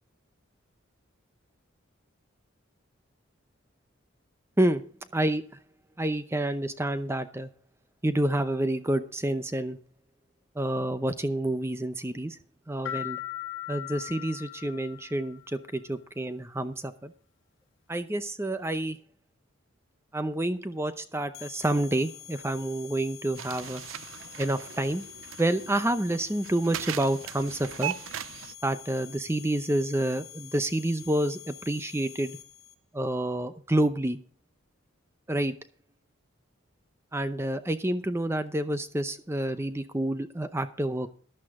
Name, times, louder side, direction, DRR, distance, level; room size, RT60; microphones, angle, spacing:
voice 1, 5.1-5.4 6.0-7.5 8.0-9.8 10.6-12.4 12.7-13.2 13.7-17.1 17.9-19.0 20.1-23.8 24.4-25.0 25.4-27.9 28.6-32.4 32.9-34.2 35.3-35.5 37.1-41.1, right 1 dB, 10° right, 11 dB, 0.6 m, -28 dB
sound 1, 12.9-15.5, left 15 dB, 65° left, 1.4 m, -38 dB
sound 2, 21.3-32.8, left 11 dB, 85° left, 1.4 m, -47 dB
sound 3, 23.4-28.5, right 10 dB, 80° right, 0.4 m, -39 dB
14.0 x 12.0 x 3.7 m, 0.42 s
head